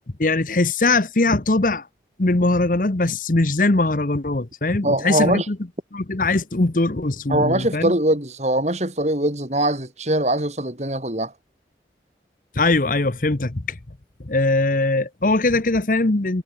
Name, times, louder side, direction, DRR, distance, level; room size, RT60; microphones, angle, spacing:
voice 1, 0.2-1.9 2.2-5.6 5.9-7.9 12.5-13.8 14.2-16.4, left 2 dB, 50° left, 1.0 m, -21 dB
voice 2, 4.8-5.5 7.3-11.3, right 1 dB, 40° right, 3.7 m, -22 dB
head